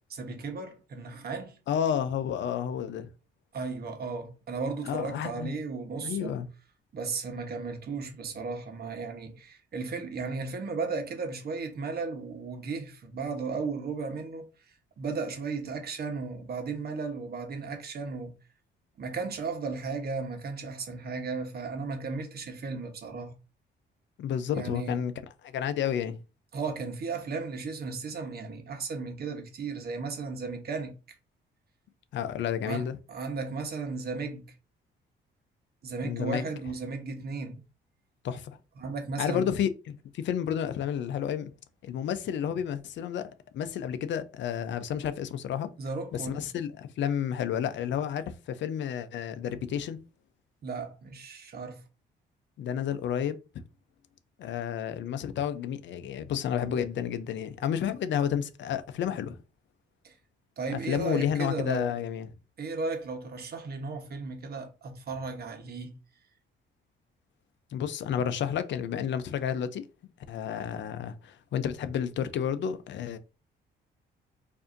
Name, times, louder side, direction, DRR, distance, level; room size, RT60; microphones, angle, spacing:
voice 1, 0.1-1.6 3.5-6.4 6.9-14.5 15.0-18.3 19.0-23.3 24.5-25.0 26.5-31.0 32.6-34.5 35.8-37.6 38.8-39.5 45.8-46.4 50.6-51.8 60.0-60.1 60.6-61.9 62.6-65.9, right 4 dB, 50° right, 1.0 m, -35 dB
voice 2, 1.7-3.1 4.9-5.6 6.0-6.5 24.2-25.1 25.4-26.2 32.1-33.0 36.0-36.5 38.2-38.6 39.2-41.5 41.8-45.7 46.1-50.0 52.6-53.4 54.4-59.4 60.9-62.3 67.7-69.8 70.3-73.2, left 9 dB, 65° left, 0.5 m, -31 dB
4.8 x 2.7 x 2.6 m
cardioid pair, 90°, 20 cm